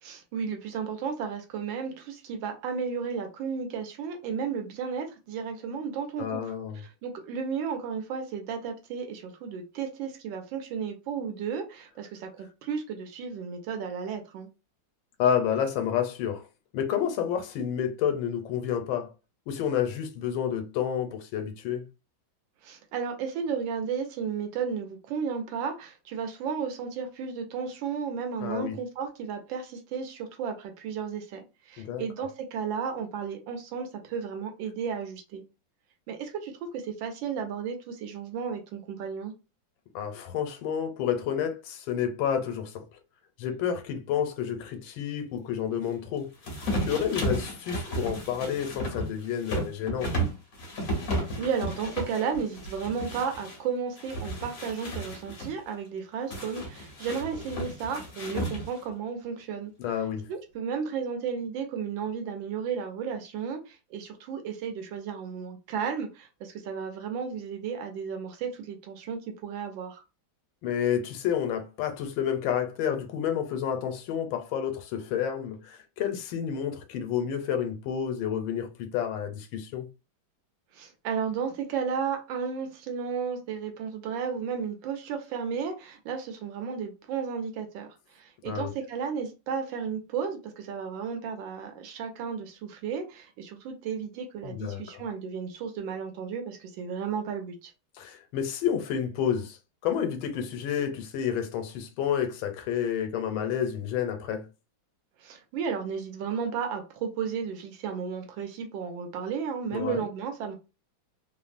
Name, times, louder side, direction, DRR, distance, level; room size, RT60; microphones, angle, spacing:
voice 1, 0.0-6.4 6.7-14.5 22.6-35.4 36.1-39.3 51.4-59.7 60.3-70.0 80.7-87.9 88.1-97.7 105.2-110.5, right 6 dB, 80° right, 1.4 m, -33 dB
voice 2, 6.2-6.8 15.2-16.5 16.7-19.1 19.5-21.9 28.4-28.7 31.8-32.0 39.9-42.8 43.4-46.3 46.8-50.2 59.8-60.3 70.6-79.9 88.4-88.7 94.4-95.0 97.9-99.6 99.8-104.5 109.7-110.0, left 8 dB, 90° left, 1.4 m, -30 dB
sound 1, 46.4-53.6 54.0-55.5 56.3-58.9, right 1 dB, 55° left, 1.3 m, -33 dB
3.4 x 2.0 x 2.4 m
omnidirectional pair, 2.1 m